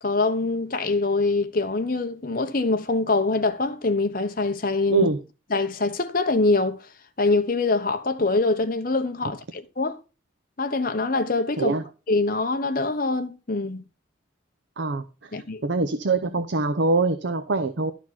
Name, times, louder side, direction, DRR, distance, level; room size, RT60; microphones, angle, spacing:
voice 1, 0.0-5.1 5.5-6.8 7.2-10.0 10.6-11.7 12.1-13.8 15.3-15.6, left 3 dB, 45° left, 1.0 m, -24 dB
voice 2, 15.6-17.9, right 3 dB, 65° right, 0.7 m, -23 dB
12.0 x 4.4 x 4.3 m
head